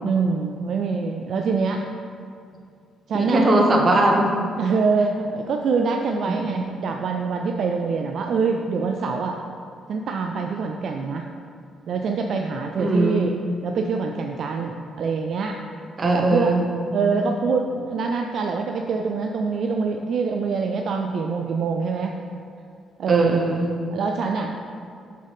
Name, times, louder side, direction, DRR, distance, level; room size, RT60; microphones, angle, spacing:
voice 1, 0.0-1.8 3.1-3.5 4.6-9.4 9.9-11.3 11.9-13.4 13.6-15.6 16.1-16.6 16.9-22.2 23.0-23.3 23.9-24.5, right 4 dB, 65° right, 3 dB, 0.3 m, -25 dB
voice 2, 3.1-4.3 6.3-6.7 12.8-13.3 16.0-16.6 23.1-23.7, right 2 dB, 40° right, 1 dB, 0.9 m, -20 dB
7.3 x 3.9 x 3.5 m, 2.4 s
cardioid pair, 90°, 0 cm